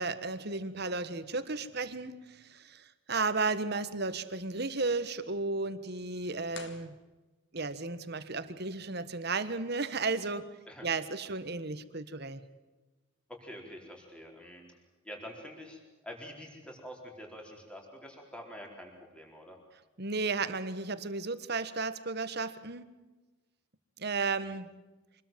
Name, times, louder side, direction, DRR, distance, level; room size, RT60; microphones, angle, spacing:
voice 1, 0.0-6.9 7.5-10.5 10.8-12.4 20.0-22.9 24.0-24.7, right 3 dB, 50° right, 12 dB, 1.5 m, -34 dB
sound 1, 6.5-7.7, left 6 dB, 60° left, 1.9 m, -50 dB
voice 2, 13.3-14.6 15.0-19.6, equal, 5° left, 1 dB, 4.3 m, -46 dB
25.5 x 21.0 x 7.6 m, 1.2 s
head